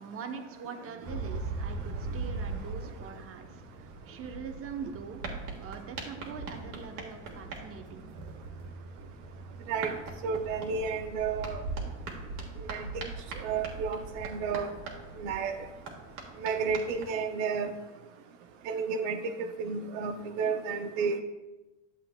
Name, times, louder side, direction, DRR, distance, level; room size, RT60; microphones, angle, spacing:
voice 1, 0.0-5.2 5.6-8.2, right 6 dB, 40° right, 6 dB, 1.0 m, -43 dB
sound 1, 1.0-17.2, right 3 dB, 60° right, 1.9 m, -40 dB
voice 2, 10.2-11.6 12.6-13.1 13.4-14.7 15.2-15.5 16.4-17.7 18.7-19.3 19.6-21.2, right 5 dB, 75° right, 6 dB, 0.7 m, -31 dB
11.0 x 7.4 x 2.3 m, 1.1 s
supercardioid pair, 105°, 36 cm